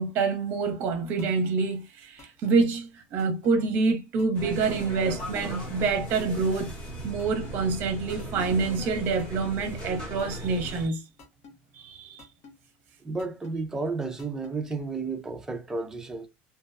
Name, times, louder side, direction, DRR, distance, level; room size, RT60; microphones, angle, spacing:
voice 1, 0.0-6.7 7.0-11.0 11.8-12.2, right 4 dB, 45° right, 0.8 m, -27 dB
sound 1, 1.2-1.5 2.2-2.5 3.2-3.5 4.2-4.5 5.2-5.5 6.2-6.5 7.2-7.5 8.2-8.5 9.2-9.5 10.2-10.5 11.2-11.5 12.2-12.5 13.2-13.5 14.2-14.5, left 4 dB, 55° left, 0.9 m, -48 dB
sound 2, 4.3-10.9, right 1 dB, 20° left, 1.0 m, -37 dB
voice 2, 13.0-16.3, right 3 dB, 10° right, 0.4 m, -32 dB
2.5 x 2.1 x 2.5 m
cardioid pair, 155°, 5 cm